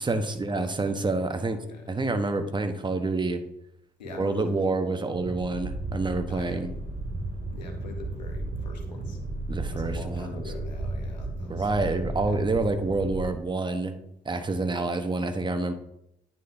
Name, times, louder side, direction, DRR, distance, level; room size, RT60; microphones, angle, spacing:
voice 1, 0.0-1.6 1.9-3.4 4.1-6.7 9.5-10.5 11.5-14.0 14.2-15.7, right 3 dB, 20° right, 7 dB, 1.0 m, -28 dB
voice 2, 1.4-1.9 4.0-4.7 6.3-6.7 7.5-9.2 9.7-11.7 14.7-14.8, left 4 dB, 90° left, 4 dB, 0.8 m, -43 dB
sound 1, 5.1-13.3, right 2 dB, 45° right, 1.8 m, -34 dB
9.5 x 5.8 x 2.7 m, 0.79 s
figure-of-eight pair, 40°, 21 cm